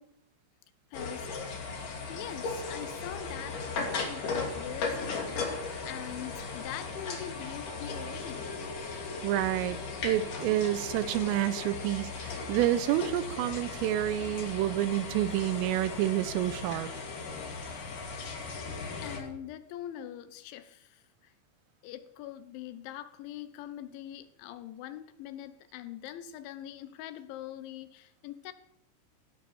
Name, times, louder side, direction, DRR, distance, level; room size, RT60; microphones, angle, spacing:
voice 1, 0.9-1.5 2.1-8.4 19.0-21.3 21.8-28.5, left 12 dB, 75° left, 3.1 m, -43 dB
sound 1, 0.9-19.2, left 4 dB, 45° left, 3.9 m, -37 dB
voice 2, 9.2-9.8 10.0-16.9, right 13 dB, 85° right, 3.5 m, -29 dB
16.5 x 12.0 x 6.9 m
omnidirectional pair, 5.8 m